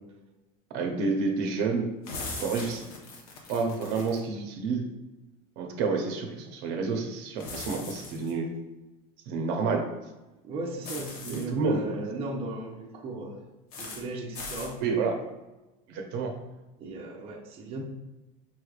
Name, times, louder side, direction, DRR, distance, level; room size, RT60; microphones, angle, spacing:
voice 1, 0.7-1.9 2.4-2.8 3.5-4.8 5.6-8.5 9.3-9.8 11.3-11.8 14.8-15.2 15.9-16.3, right 4 dB, 65° right, 3 dB, 0.8 m, -29 dB
sound 1, 2.0-4.2 7.4-8.3 10.8-11.5 13.7-14.0 14.3-14.7, left 3 dB, 85° left, 1.0 m, -40 dB
voice 2, 10.4-13.4 13.8-14.8 16.8-17.8, right 2 dB, 30° right, -1 dB, 0.7 m, -36 dB
5.6 x 3.3 x 2.4 m, 1.0 s
supercardioid pair, 130°, 18 cm